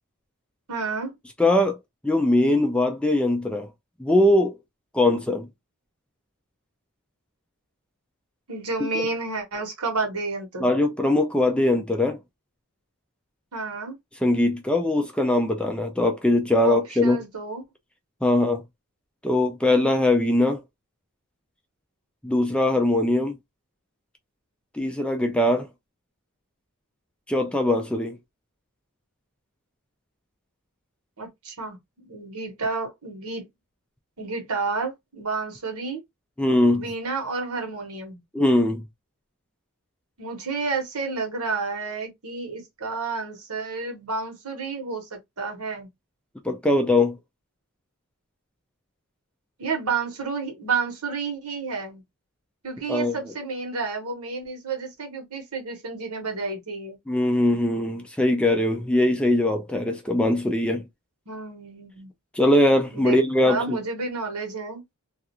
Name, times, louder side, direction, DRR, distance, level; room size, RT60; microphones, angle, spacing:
voice 1, 0.7-1.1 8.5-10.6 13.5-14.0 16.6-17.6 31.2-33.4 34.2-36.0 36.8-38.2 40.2-45.9 49.6-52.0 52.6-57.0 61.3-62.1 62.9-63.2 63.4-64.8, right 4 dB, 80° right, 1.1 m, -30 dB
voice 2, 1.4-1.8 2.0-3.7 4.0-4.5 4.9-5.5 10.6-12.2 14.2-17.2 18.2-18.6 19.2-20.6 22.2-23.4 24.7-25.7 27.3-28.2 36.4-36.9 38.3-38.8 46.4-47.2 52.9-53.2 57.1-60.8 62.3-63.8, left 1 dB, 5° left, 0.3 m, -21 dB
2.4 x 2.3 x 2.8 m
head